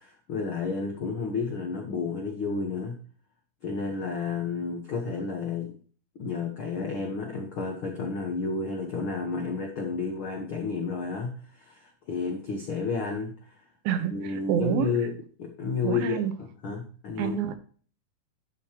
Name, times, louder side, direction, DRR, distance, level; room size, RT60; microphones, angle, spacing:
voice 1, 0.0-3.0 3.6-5.8 6.2-13.5 14.1-15.1 15.4-17.4, left 4 dB, 80° left, 2 dB, 1.1 m, -31 dB
voice 2, 13.9-14.9 15.8-16.3 17.2-17.5, right 9 dB, 75° right, 9 dB, 2.7 m, -27 dB
12.0 x 7.1 x 2.9 m, 0.43 s
omnidirectional pair, 4.4 m